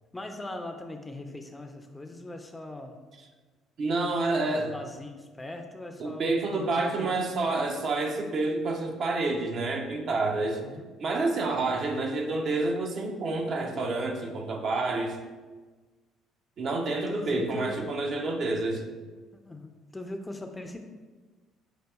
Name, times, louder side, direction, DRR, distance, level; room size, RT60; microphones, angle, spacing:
voice 1, 0.1-3.0 4.0-4.2 4.4-7.2 10.6-10.9 17.1-17.8 19.4-20.8, left 1 dB, 15° left, 5 dB, 0.4 m, -40 dB
voice 2, 3.8-4.7 6.0-10.6 11.0-15.2 16.6-18.8, right 3 dB, 55° right, 2 dB, 0.5 m, -28 dB
6.1 x 2.6 x 2.2 m, 1.3 s
hypercardioid pair, 55°, 0 cm